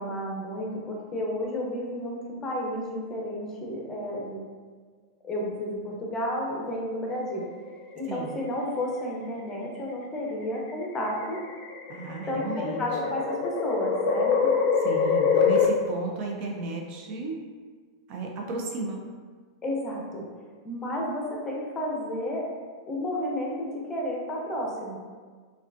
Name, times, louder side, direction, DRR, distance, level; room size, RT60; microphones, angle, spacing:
voice 1, 0.0-4.4 5.2-7.4 7.9-11.4 12.3-14.5 19.6-20.2 20.6-22.5 22.8-25.0, left 1 dB, 20° left, -2 dB, 0.8 m, -32 dB
sound 1, 7.1-7.9 9.1-9.5 10.4-15.7, left 6 dB, 45° left, 0.4 m, -25 dB
voice 2, 11.9-12.8 14.8-17.4 18.1-19.1, right 3 dB, 45° right, 0 dB, 0.6 m, -34 dB
4.8 x 2.4 x 2.5 m, 1.5 s
hypercardioid pair, 115°, 2 cm